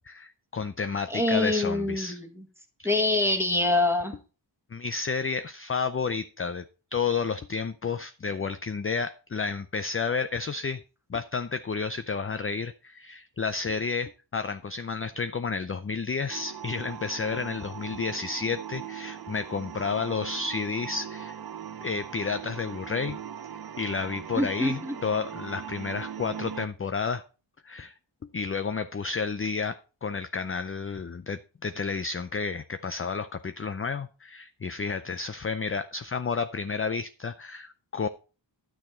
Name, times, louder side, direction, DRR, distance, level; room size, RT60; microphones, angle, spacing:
voice 1, 0.1-2.2 2.8-2.9 4.7-6.6 6.9-10.8 11.1-21.4 21.8-23.2 23.8-27.2 27.6-27.9 28.3-38.1, left 5 dB, 30° left, 11 dB, 0.5 m, -31 dB
voice 2, 1.1-2.5 2.8-4.2 24.3-25.0, left 2 dB, 5° right, 5 dB, 1.8 m, -25 dB
sound 1, 16.3-26.7, right 9 dB, 50° right, 0.7 m, -40 dB
10.5 x 6.4 x 4.3 m, 0.34 s
wide cardioid pair, 70°, 46 cm